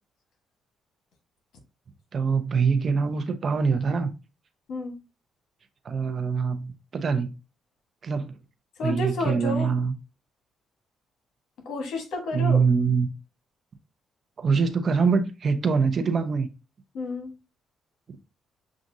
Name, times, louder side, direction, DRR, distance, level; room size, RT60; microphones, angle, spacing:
voice 1, 2.1-4.1 5.8-7.3 8.0-8.4 8.8-9.9 12.3-13.1 14.4-16.5, right 5 dB, 45° right, 0.8 m, -24 dB
voice 2, 8.8-9.7 11.6-12.7 16.9-17.3, left 2 dB, 75° left, 1.4 m, -30 dB
7.3 x 2.5 x 2.7 m
cardioid pair, 90°, 0 cm